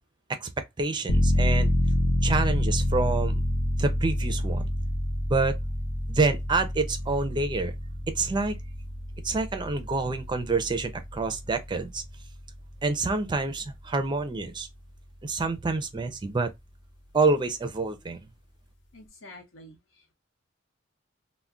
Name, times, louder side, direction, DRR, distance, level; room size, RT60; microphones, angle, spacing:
voice 1, 0.8-1.7 2.2-3.3 3.8-4.6 5.3-5.6 6.1-7.7 8.2-8.6 9.2-12.0 12.8-14.7 15.2-16.5 17.1-18.2, right 3 dB, 25° right, 0.4 m, -27 dB
sound 1, 1.1-13.6 14.0-14.1, left 1 dB, 65° left, 0.6 m, -28 dB
voice 2, 18.9-20.1, left 1 dB, 90° left, 0.9 m, -49 dB
2.3 x 2.1 x 3.6 m
head